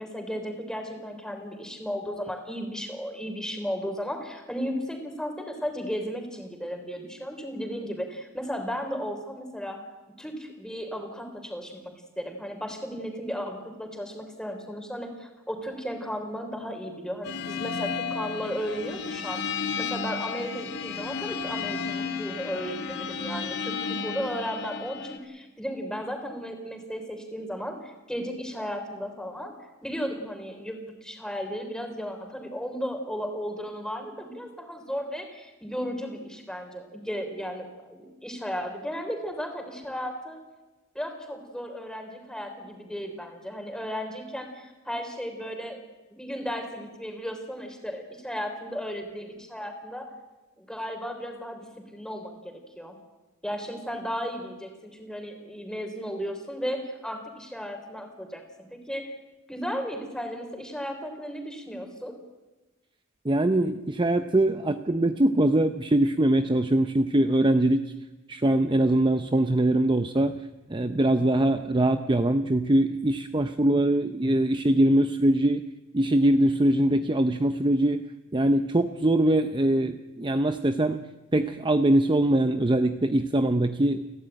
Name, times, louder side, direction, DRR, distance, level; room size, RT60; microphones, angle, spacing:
voice 1, 0.0-9.8 10.2-29.5 29.8-40.4 41.0-50.1 50.6-52.9 53.4-59.1 59.5-62.1, equal, 5° left, 4 dB, 3.5 m, -35 dB
sound 1, 17.2-25.2, left 5 dB, 55° left, 2.2 m, -33 dB
voice 2, 63.2-67.8 68.3-70.4 70.7-75.6 75.9-78.1 78.3-81.0 81.3-84.1, right 1 dB, 20° right, 9 dB, 0.6 m, -22 dB
30.0 x 12.0 x 9.1 m, 1.1 s
head